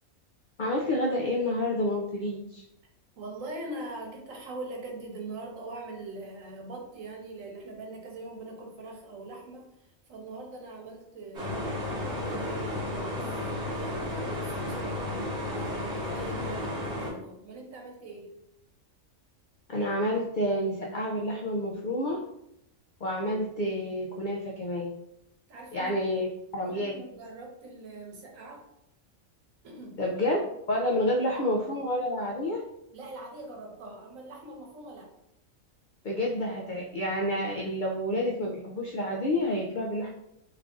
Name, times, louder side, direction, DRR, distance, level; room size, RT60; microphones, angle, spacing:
voice 1, 0.6-2.6 19.7-22.2 23.0-24.9 25.7-26.3 26.5-27.0 30.0-30.4 30.7-32.6 36.0-40.1, left 1 dB, 75° left, -1 dB, 0.4 m, -29 dB
voice 2, 3.1-15.0 15.5-18.4 25.5-26.0 26.6-28.6 29.6-30.0 31.3-31.4 32.9-35.1, right 2 dB, 75° right, 0 dB, 1.3 m, -42 dB
sound 1, 11.3-17.1, left 1 dB, 35° right, 1.1 m, -33 dB
3.3 x 2.4 x 3.6 m, 0.80 s
omnidirectional pair, 1.4 m